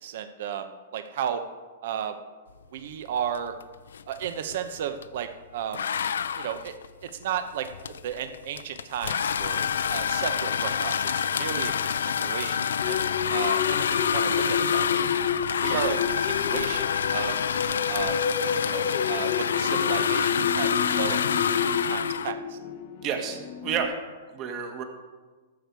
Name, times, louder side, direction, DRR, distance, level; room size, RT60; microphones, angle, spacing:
voice 1, 0.0-1.4 1.8-2.2 2.7-3.5 4.1-5.8 6.4-6.7 7.2-11.7 12.1-15.0 15.6-16.8 17.1-17.4 17.9-18.2 18.6-20.7 21.0-21.2 21.7-22.6, right 9 dB, 60° right, 9 dB, 0.8 m, -34 dB
sound 1, 3.3-3.6 3.9-5.2 5.7-22.3, left 7 dB, 85° left, 0.4 m, -27 dB
sound 2, 12.8-23.9, left 7 dB, 55° left, 0.8 m, -30 dB
voice 2, 23.0-23.9 24.3-24.8, right 7 dB, 35° right, 5 dB, 1.5 m, -30 dB
13.5 x 6.9 x 4.7 m, 1.3 s
hypercardioid pair, 140°, 0 cm